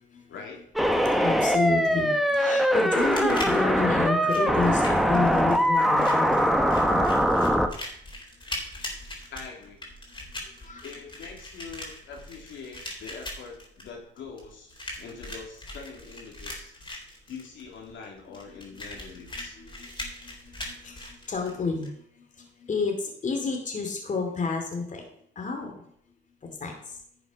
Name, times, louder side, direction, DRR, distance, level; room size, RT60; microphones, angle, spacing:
voice 1, 0.3-0.6 9.2-9.8 10.8-16.7 17.3-19.6, left 5 dB, 75° left, 0 dB, 3.1 m, -43 dB
sound 1, 0.8-7.7, equal, ahead, 1.1 m, -22 dB
voice 2, 1.2-7.2 10.6-10.9 19.6-19.9 20.8-21.9 22.7-25.0 25.4-25.7 26.6-26.7, left 4 dB, 40° left, 2 dB, 2.6 m, -29 dB
sound 2, 2.9-21.9, left 1 dB, 25° left, 3.9 m, -40 dB
11.0 x 7.0 x 5.3 m, 0.68 s
cardioid pair, 90°, 20 cm